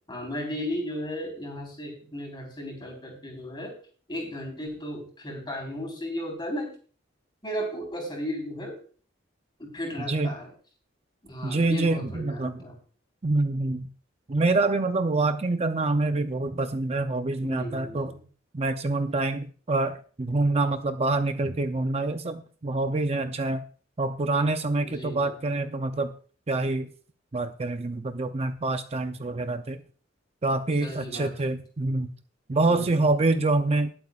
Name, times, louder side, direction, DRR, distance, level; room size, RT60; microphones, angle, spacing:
voice 1, 0.1-3.7 4.1-6.7 7.4-8.8 9.6-10.5 11.2-12.7 17.4-18.2 24.8-25.4 30.8-31.6 32.7-33.2, equal, 25° left, 1 dB, 4.0 m, -35 dB
voice 2, 11.4-12.5 13.2-13.9 14.3-18.1 18.5-23.6 24.0-26.1 26.5-26.9 27.3-29.8 30.4-32.1 32.5-33.9, right 2 dB, 35° right, 8 dB, 0.6 m, -26 dB
20.5 x 7.9 x 2.4 m, 0.41 s
head